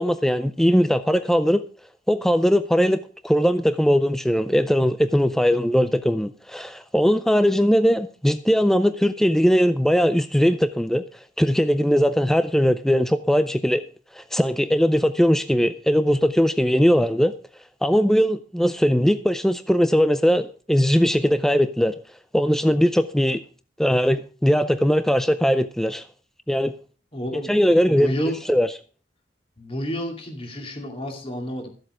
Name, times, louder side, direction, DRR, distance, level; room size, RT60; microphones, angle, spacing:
voice 1, 0.0-1.6 2.1-11.1 11.4-13.8 14.1-17.3 17.8-21.9 22.3-23.4 23.8-26.0 26.5-26.7 27.3-28.1 28.5-28.7, equal, ahead, 0.4 m, -20 dB
voice 2, 27.1-27.5 27.9-28.4 29.6-31.7, equal, 30° left, 2.5 m, -30 dB
13.5 x 7.9 x 4.9 m
head